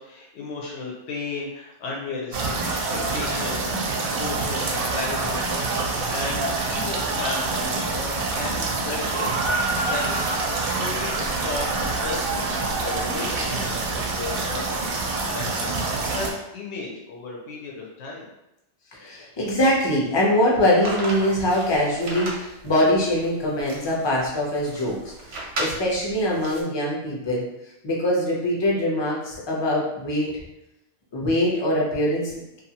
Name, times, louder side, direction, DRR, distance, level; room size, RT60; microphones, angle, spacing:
voice 1, 0.0-9.4 9.9-14.8 15.2-18.3, left 3 dB, 80° left, -2 dB, 0.9 m, -35 dB
sound 1, 2.3-16.3, right 3 dB, 60° right, 0.7 m, -26 dB
voice 2, 18.9-27.4 27.8-30.3 31.1-32.6, left 1 dB, 30° left, -4 dB, 0.5 m, -23 dB
sound 2, 20.8-26.6, right 1 dB, 90° right, 1.0 m, -35 dB
2.7 x 2.3 x 2.7 m, 0.88 s
omnidirectional pair, 1.2 m